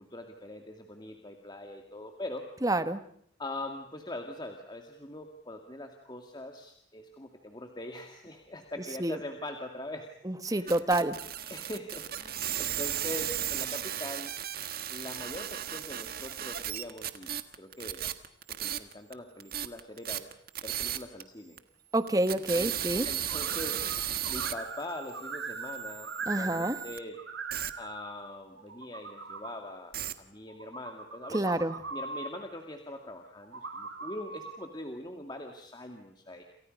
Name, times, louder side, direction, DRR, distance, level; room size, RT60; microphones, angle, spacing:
voice 1, 0.0-2.5 3.4-10.1 10.4-10.9 11.5-14.3 14.9-18.1 18.6-20.3 20.6-21.6 22.5-22.7 23.0-23.8 24.3-27.2 27.8-31.5 31.9-36.4, left 1 dB, 20° left, 4 dB, 2.2 m, -42 dB
voice 2, 2.6-3.0 9.0-9.2 10.2-11.2 21.9-23.1 26.3-26.8 31.3-31.8, right 1 dB, 20° right, 11 dB, 1.3 m, -28 dB
sound 1, 10.7-19.1 19.4-21.2 21.6-21.7 22.1-27.0 27.5-27.7 29.9-30.1, right 11 dB, 50° right, 1.6 m, -35 dB
sound 2, 23.3-24.0 24.2-26.9 27.1-28.0 28.6-29.5 30.5-32.3 33.4-34.6, right 4 dB, 75° right, 6.6 m, -40 dB
29.5 x 28.5 x 5.4 m, 0.65 s
head